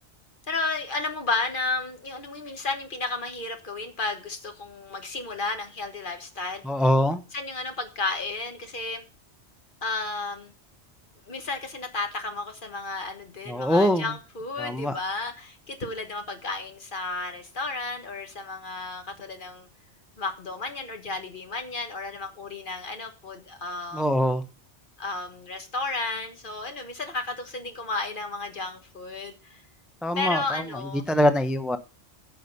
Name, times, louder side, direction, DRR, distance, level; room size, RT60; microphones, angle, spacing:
voice 1, 0.5-6.6 7.3-9.0 9.8-10.5 11.3-19.7 20.2-24.0 25.0-29.6 30.2-31.0, left 3 dB, 45° left, 6 dB, 1.6 m, -33 dB
voice 2, 6.6-7.2 13.5-14.1 14.6-14.9 23.9-24.4 30.0-30.6 31.1-31.8, left 1 dB, ahead, 10 dB, 0.4 m, -23 dB
9.1 x 6.8 x 5.3 m, 0.32 s
omnidirectional pair, 1.2 m